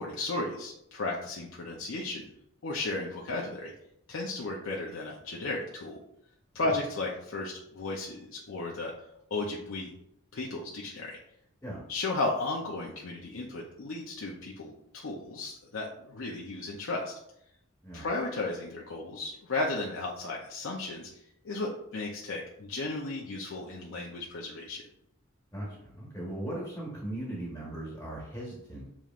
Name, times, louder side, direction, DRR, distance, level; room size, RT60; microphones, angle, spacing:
voice 1, 0.0-2.2 2.6-3.7 4.1-6.0 6.5-8.9 9.3-9.9 10.3-11.2 11.9-17.1 17.9-21.1 21.4-24.8, left 2 dB, 70° left, -2 dB, 0.6 m, -34 dB
voice 2, 25.5-28.9, right 1 dB, 15° left, -5 dB, 1.1 m, -38 dB
7.0 x 3.0 x 2.4 m, 0.77 s
head